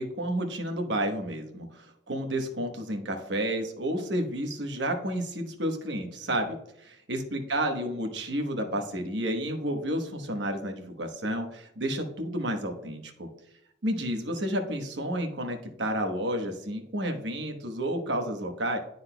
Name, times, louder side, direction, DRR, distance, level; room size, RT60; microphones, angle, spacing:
voice 1, 0.0-13.3 13.8-18.8, right 1 dB, 65° right, 4 dB, 1.1 m, -31 dB
11.5 x 4.0 x 2.2 m, 0.77 s
head